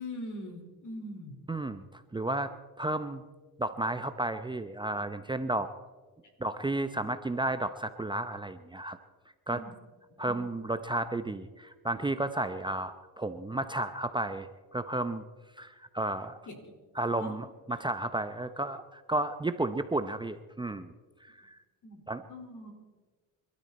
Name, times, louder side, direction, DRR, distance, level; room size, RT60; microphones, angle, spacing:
voice 1, 0.0-1.4 6.2-6.3 9.5-9.7 10.1-10.5 16.2-16.7 17.1-17.4 21.8-22.0 22.3-22.7, left 1 dB, 50° left, 4 dB, 4.9 m, -42 dB
voice 2, 1.5-3.2 3.6-5.7 6.4-9.0 9.5-9.6 10.2-15.2 15.6-16.4 17.0-20.9 21.2-21.6 22.1-22.2, right 2 dB, 10° right, 10 dB, 0.8 m, -33 dB
26.0 x 13.0 x 4.3 m, 1.4 s
supercardioid pair, 75°, 38 cm